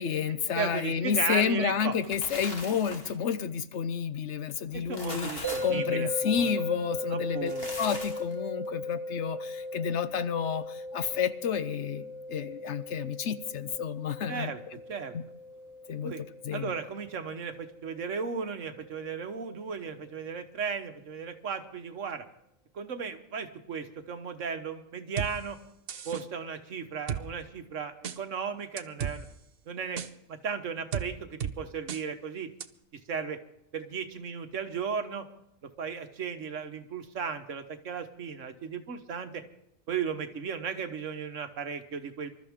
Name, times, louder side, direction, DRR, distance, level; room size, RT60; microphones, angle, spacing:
voice 1, 0.0-7.5 7.8-14.5 15.1-15.2 15.9-16.1 16.4-16.7, left 7 dB, 65° left, 13 dB, 1.0 m, -30 dB
voice 2, 0.5-1.9 4.7-6.1 6.4-6.5 7.1-7.7 14.3-14.6 14.9-15.1 16.0-16.2 16.5-22.2 22.7-25.6 26.0-29.3 29.6-30.0 30.3-32.5 33.1-33.4 33.7-35.3 35.6-39.4 39.9-42.3, right 6 dB, 70° right, 8 dB, 1.5 m, -35 dB
sound 1, 2.0-3.3 4.7-5.8 7.3-8.3, left 1 dB, 45° left, 2.8 m, -40 dB
sound 2, 5.4-18.5, left 1 dB, 15° left, 2.0 m, -38 dB
sound 3, 25.2-25.3 25.9-26.2 27.1-27.2 28.0-28.2 28.8-29.2 30.0-30.1 30.9-31.1 31.4-31.5 31.9-32.0 32.6-32.7, right 8 dB, 55° right, 0.9 m, -33 dB
26.0 x 13.0 x 3.6 m, 0.80 s
omnidirectional pair, 1.4 m